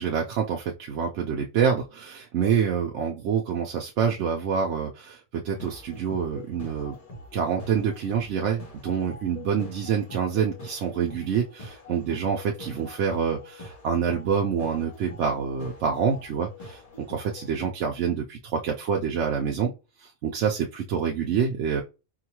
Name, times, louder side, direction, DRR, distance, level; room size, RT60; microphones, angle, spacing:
voice 1, 0.0-7.0 7.3-19.7 20.0-21.8, right 7 dB, 75° right, 1 dB, 0.9 m, -27 dB
sound 1, 5.5-17.7, left 2 dB, 35° left, 0.8 m, -44 dB
4.7 x 2.2 x 2.9 m, 0.28 s
omnidirectional pair, 1.3 m